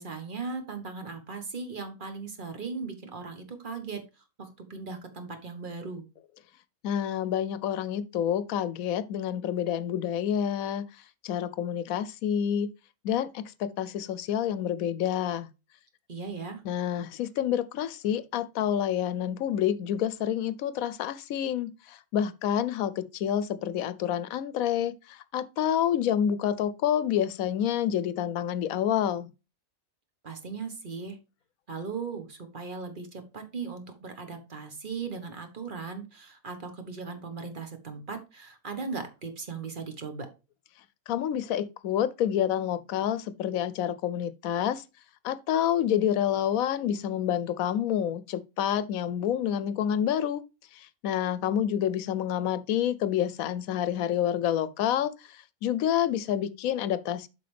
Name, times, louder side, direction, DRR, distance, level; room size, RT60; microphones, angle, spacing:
voice 1, 0.0-4.0 4.4-6.1 16.1-16.6 30.2-31.2 31.7-40.3, right 4 dB, 40° right, 1.4 m, -38 dB
voice 2, 6.8-10.8 11.2-12.7 13.0-15.5 16.6-29.3 41.1-44.8 45.2-50.4 50.7-57.3, left 10 dB, 80° left, 1.0 m, -28 dB
7.7 x 5.4 x 3.3 m
omnidirectional pair, 1.5 m